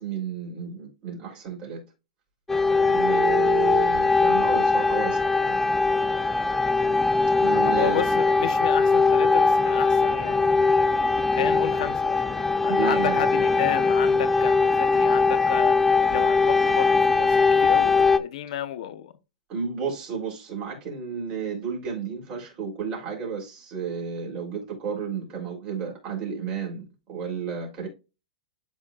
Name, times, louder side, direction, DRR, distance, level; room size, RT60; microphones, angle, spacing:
voice 1, 0.0-1.8 2.7-5.6 6.3-6.7 7.4-8.0 12.7-13.3 19.5-27.9, right 6 dB, 30° right, 3.8 m, -32 dB
sound 1, 2.5-18.2, left 4 dB, 5° left, 0.6 m, -21 dB
voice 2, 7.5-11.0 11.3-12.2 12.6-19.1, left 10 dB, 60° left, 1.1 m, -32 dB
12.0 x 4.2 x 2.5 m
hypercardioid pair, 145°, 4 cm